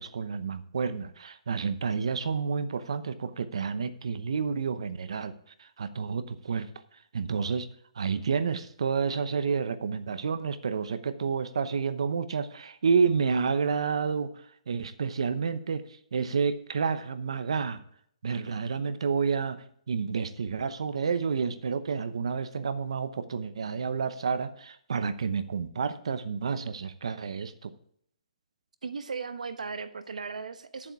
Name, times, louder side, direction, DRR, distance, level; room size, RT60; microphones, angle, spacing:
voice 1, 0.0-5.3 5.6-6.7 7.1-7.7 8.0-14.3 14.7-15.8 16.1-17.8 18.2-27.7, right 5 dB, 50° right, 12 dB, 0.8 m, -30 dB
voice 2, 28.8-30.9, right 5 dB, 80° right, 10 dB, 1.1 m, -37 dB
11.0 x 7.3 x 4.8 m, 0.65 s
hypercardioid pair, 180°, 4 cm